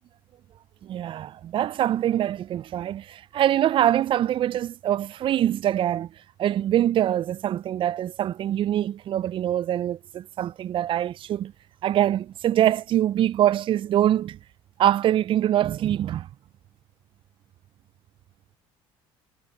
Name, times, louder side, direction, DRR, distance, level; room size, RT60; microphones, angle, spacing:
voice 1, 0.8-6.1 6.4-11.5 11.8-14.4 14.8-16.3, right 12 dB, 45° right, 0.3 m, -24 dB
supercardioid pair, 85°, 12 cm